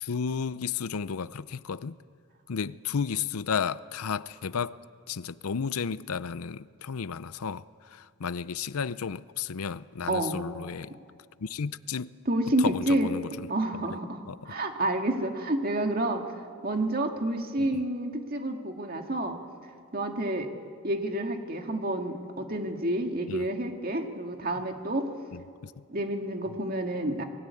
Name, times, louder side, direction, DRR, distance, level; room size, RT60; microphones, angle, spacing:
voice 1, 0.0-2.0 2.5-4.8 5.1-11.0 11.4-12.1 12.6-13.5 13.9-14.0 14.3-14.4 17.6-17.7 23.3-23.5 25.3-25.7 26.5-26.6, left 6 dB, 80° left, 0.6 m, -33 dB
voice 2, 12.3-13.1 13.5-16.3 16.6-19.4 19.9-20.5 20.8-25.1 25.9-27.2, right 1 dB, 40° right, 2.1 m, -29 dB
27.5 x 21.0 x 8.5 m
head